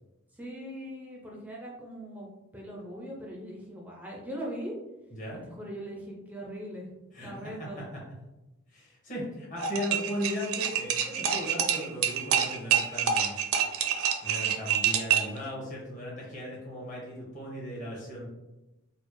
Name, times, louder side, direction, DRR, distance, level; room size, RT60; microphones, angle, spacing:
voice 1, 0.3-4.7 5.6-6.9 7.2-7.8, equal, 5° right, -2 dB, 0.4 m, -40 dB
voice 2, 5.1-5.5 7.1-8.0 8.7-13.4 13.7-13.8 14.2-18.3, equal, 35° left, -5 dB, 1.2 m, -37 dB
sound 1, 9.6-15.4, right 8 dB, 65° right, 0.4 m, -27 dB
4.1 x 2.0 x 3.1 m, 1.0 s
head